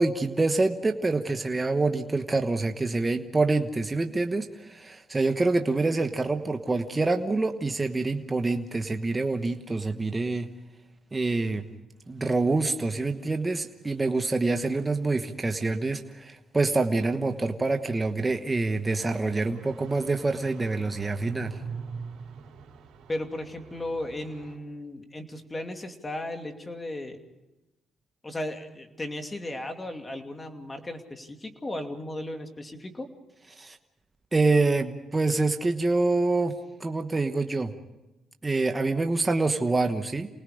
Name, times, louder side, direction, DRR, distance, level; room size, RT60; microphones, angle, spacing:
voice 1, 0.0-10.5 11.1-11.6 12.1-21.6 33.6-33.8 34.3-37.7 38.4-40.3, right 3 dB, 20° right, 6 dB, 1.2 m, -26 dB
sound 1, 19.0-24.6, right 6 dB, 70° right, 3.7 m, -43 dB
voice 2, 23.1-27.2 28.2-33.1, left 1 dB, 20° left, 5 dB, 2.6 m, -35 dB
29.0 x 19.5 x 5.0 m, 1.0 s
cardioid pair, 90°, 0 cm